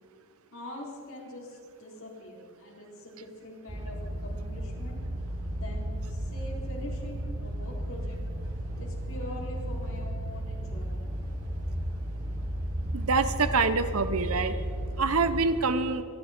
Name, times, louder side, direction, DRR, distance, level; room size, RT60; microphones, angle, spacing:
voice 1, 0.5-5.0 5.5-8.2 8.8-11.1, left 1 dB, 70° left, -3 dB, 4.2 m, -43 dB
sound 1, 3.7-15.4, right 1 dB, 40° right, 2.7 m, -34 dB
voice 2, 12.9-14.6 15.0-16.0, right 4 dB, 80° right, 11 dB, 0.9 m, -26 dB
26.5 x 10.5 x 4.4 m, 2.4 s
head